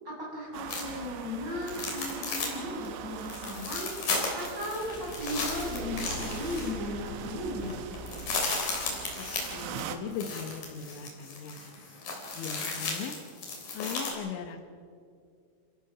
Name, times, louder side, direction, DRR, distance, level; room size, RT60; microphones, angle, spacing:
voice 1, 0.0-7.8, left 1 dB, 20° right, -5 dB, 7.4 m, -36 dB
sound 1, 0.5-10.0, right 8 dB, 85° right, 3.5 m, -42 dB
sound 2, 0.7-1.1 1.6-2.6 2.8-2.9 3.2-6.9 7.3-7.4 7.6-14.1, left 3 dB, 50° left, 4.9 m, -35 dB
Car / Engine, 4.6-9.2, left 3 dB, 25° left, 4.6 m, -43 dB
voice 2, 9.5-11.6 12.3-13.2 13.7-14.6, left 6 dB, 90° left, 7 dB, 3.7 m, -38 dB
30.0 x 15.0 x 6.1 m, 2.3 s
omnidirectional pair, 5.2 m